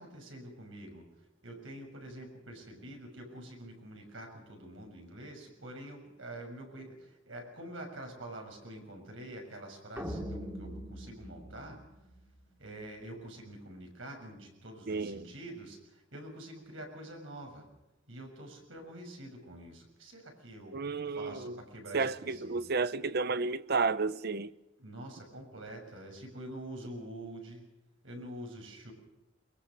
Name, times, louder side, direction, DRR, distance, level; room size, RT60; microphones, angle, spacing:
voice 1, 0.0-11.8 12.6-17.7 18.1-20.8 21.1-22.6 24.8-27.6 28.0-28.9, right 1 dB, 75° right, 6.8 m, -46 dB
sound 1, 10.0-12.4, equal, 15° right, 2.7 m, -42 dB
voice 2, 14.9-15.3 20.7-21.6 21.9-24.5, right 4 dB, 55° right, 0.8 m, -32 dB
22.5 x 22.0 x 6.5 m
head